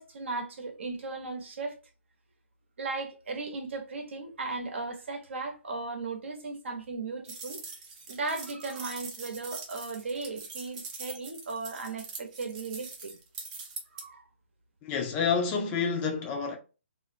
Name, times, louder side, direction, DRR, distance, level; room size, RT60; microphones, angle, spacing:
voice 1, 0.0-1.8 2.8-7.6 8.1-13.2 13.9-14.2, right 3 dB, 70° right, 0.8 m, -36 dB
sound 1, 7.3-14.0, right 4 dB, 30° right, 0.6 m, -43 dB
voice 2, 14.8-16.6, left 6 dB, 20° left, 0.4 m, -28 dB
2.5 x 2.0 x 2.6 m
hypercardioid pair, 150°, 7 cm